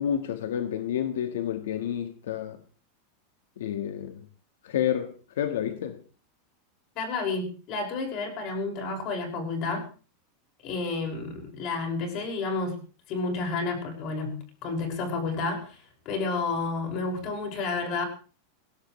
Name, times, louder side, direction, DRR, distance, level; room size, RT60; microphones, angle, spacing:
voice 1, 0.0-2.6 3.6-4.3 4.6-6.0, left 9 dB, 85° left, 1.5 m, -30 dB
voice 2, 7.0-9.9 10.6-12.8 13.1-15.8 16.1-18.0, left 3 dB, 40° left, 5.7 m, -30 dB
20.5 x 16.5 x 3.2 m
supercardioid pair, 160°, 0 cm